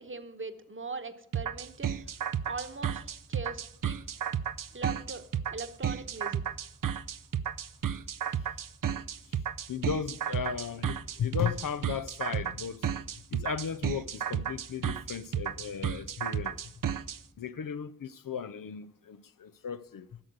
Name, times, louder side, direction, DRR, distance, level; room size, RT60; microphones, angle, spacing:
voice 1, 0.0-2.0 2.4-4.0 4.7-5.2 5.5-6.4, right 4 dB, 40° right, 1.1 m, -40 dB
sound 1, 1.3-17.2, right 8 dB, 80° right, 0.5 m, -32 dB
voice 2, 9.7-12.9 13.3-16.7 17.4-20.2, left 7 dB, 85° left, 0.6 m, -36 dB
12.0 x 6.6 x 9.3 m
wide cardioid pair, 40°, 33 cm